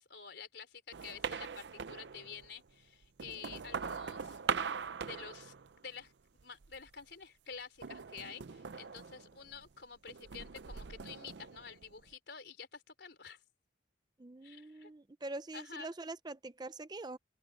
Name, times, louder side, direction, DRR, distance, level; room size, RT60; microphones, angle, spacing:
voice 1, 0.0-4.4 5.0-5.5 5.8-6.1 6.4-13.4 14.4-14.9 15.5-15.9, left 6 dB, 60° left, 4.8 m, -49 dB
sound 1, 0.9-2.5 3.0-6.0 6.4-7.0 7.8-9.7 10.1-12.1, right 6 dB, 65° right, 0.6 m, -41 dB
voice 2, 14.2-17.2, right 2 dB, 20° right, 0.5 m, -44 dB
open air
head